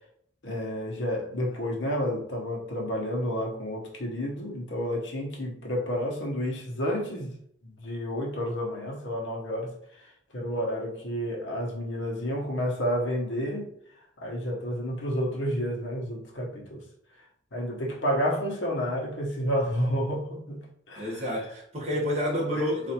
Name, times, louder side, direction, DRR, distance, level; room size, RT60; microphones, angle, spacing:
voice 1, 0.4-7.3 7.6-10.1 10.3-13.7 14.2-16.8 17.5-21.4, equal, 80° left, -1 dB, 0.9 m, -30 dB
voice 2, 21.0-22.9, equal, 35° right, -4 dB, 1.1 m, -29 dB
4.1 x 2.5 x 2.8 m, 0.67 s
head